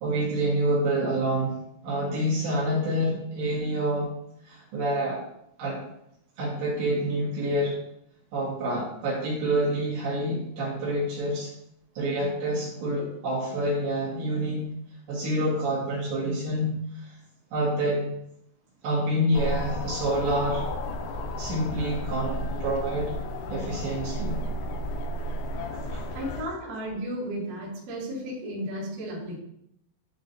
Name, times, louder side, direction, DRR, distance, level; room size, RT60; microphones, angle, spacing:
voice 1, 0.0-1.5 1.8-4.1 4.4-5.2 5.6-5.8 6.4-7.8 8.3-11.5 12.0-14.7 15.1-17.2 17.5-18.1 18.8-20.7 21.4-23.1 23.5-24.4 25.9-26.1, right 1 dB, 65° right, -7 dB, 3.6 m, -27 dB
sound 1, 19.3-26.4, equal, 85° left, 2.5 m, -32 dB
voice 2, 26.1-29.4, equal, 50° right, -8 dB, 3.0 m, -34 dB
11.5 x 3.8 x 2.6 m, 0.77 s
omnidirectional pair, 5.8 m